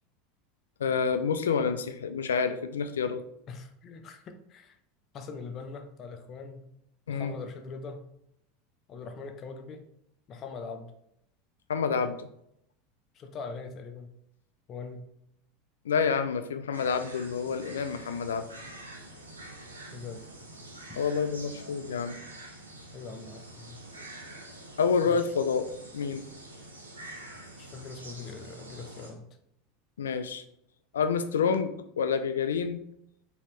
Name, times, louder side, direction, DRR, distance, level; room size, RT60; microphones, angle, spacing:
voice 1, 0.8-3.2 7.1-7.3 11.7-12.3 15.9-18.4 21.0-22.2 24.8-25.7 25.9-26.2 30.0-30.4 30.9-32.8, left 6 dB, 80° left, 10 dB, 0.3 m, -28 dB
voice 2, 3.5-4.7 5.1-6.7 7.1-8.0 8.9-9.8 10.3-10.9 13.2-14.1 14.7-15.1 19.9-20.2 20.9-21.0 22.9-23.8 25.0-25.1 27.6-29.3, left 4 dB, 40° left, 6 dB, 0.6 m, -42 dB
sound 1, 16.7-29.1, right 1 dB, 90° right, 0.8 m, -46 dB
4.1 x 2.9 x 3.0 m, 0.75 s
hypercardioid pair, 80°, 0 cm